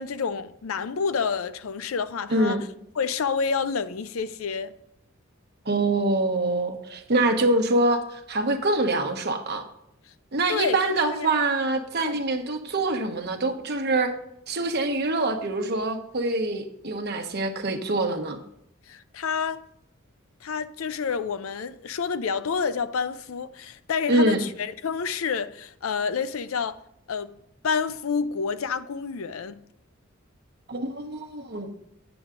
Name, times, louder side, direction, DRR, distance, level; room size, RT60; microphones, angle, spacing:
voice 1, 0.0-2.7 3.0-4.7 10.5-11.3 12.0-12.2 18.9-19.6 20.4-26.8 27.1-27.4 27.6-29.6, left 5 dB, 85° left, 0.5 m, -29 dB
voice 2, 2.3-2.6 5.6-9.7 10.3-14.1 14.5-18.4 24.1-24.4 30.7-31.7, right 2 dB, 55° right, 1.1 m, -25 dB
9.4 x 7.0 x 3.7 m
head